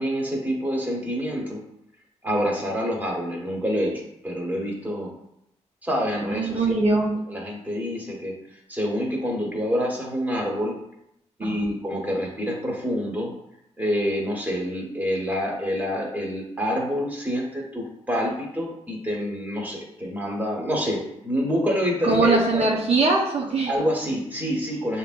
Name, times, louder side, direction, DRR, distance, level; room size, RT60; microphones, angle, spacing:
voice 1, 0.0-1.6 2.2-5.1 5.8-6.7 7.3-8.3 8.7-10.8 11.4-13.3 13.8-22.7 23.7-25.0, equal, 15° right, -2 dB, 1.5 m, -27 dB
voice 2, 6.2-7.1 11.4-11.7 22.0-23.7, right 3 dB, 55° right, -2 dB, 0.8 m, -22 dB
6.7 x 2.9 x 2.5 m, 0.78 s
cardioid pair, 75°, 12 cm